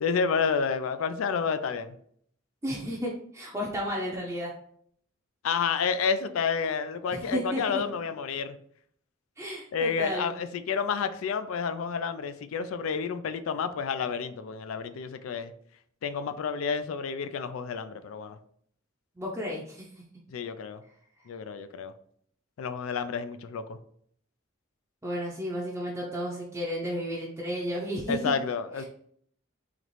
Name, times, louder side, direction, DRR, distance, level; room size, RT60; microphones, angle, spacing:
voice 1, 0.0-1.9 5.4-8.6 9.7-15.5 16.0-18.4 20.3-20.8 21.3-21.9 22.6-23.8 28.1-28.8, left 6 dB, 75° left, 11 dB, 0.3 m, -30 dB
voice 2, 2.6-4.5 7.1-7.8 9.4-10.3 19.2-19.8 25.0-28.4 28.8-28.9, equal, 10° right, -4 dB, 0.6 m, -33 dB
4.0 x 3.0 x 3.1 m, 0.65 s
head